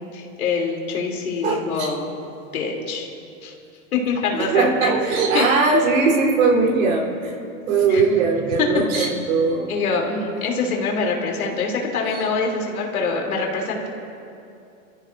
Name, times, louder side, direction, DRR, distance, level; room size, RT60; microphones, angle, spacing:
voice 1, 0.0-2.1 2.5-3.1 3.4-3.5 3.9-4.9 5.3-5.4 7.9-8.0 8.9-9.1 9.7-13.9, left 4 dB, 85° left, -1 dB, 3.5 m, -25 dB
voice 2, 1.4-1.9 4.3-7.4 7.7-9.7 12.1-12.2, right 4 dB, 70° right, -2 dB, 4.1 m, -20 dB
26.5 x 14.5 x 2.7 m, 2.6 s
hypercardioid pair, 130°, 42 cm